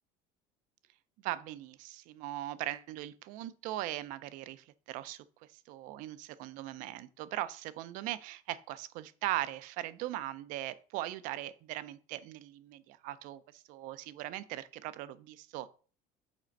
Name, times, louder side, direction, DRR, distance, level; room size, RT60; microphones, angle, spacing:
voice 1, 1.2-5.2 5.7-15.7, right 15 dB, 50° right, 0.5 m, -39 dB
5.0 x 4.3 x 5.1 m
cardioid pair, 175°, 17 cm